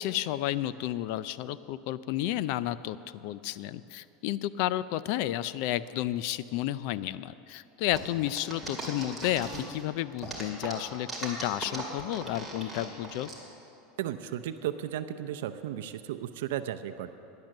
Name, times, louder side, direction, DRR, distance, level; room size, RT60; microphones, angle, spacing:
voice 1, 0.0-13.3, left 14 dB, 50° left, 16 dB, 0.4 m, -32 dB
sound 1, 7.9-9.8 10.2-13.3, right 2 dB, ahead, 2.3 m, -38 dB
voice 2, 14.0-17.1, right 11 dB, 80° right, 10 dB, 0.6 m, -34 dB
16.5 x 10.5 x 6.5 m, 2.9 s
supercardioid pair, 165°, 0 cm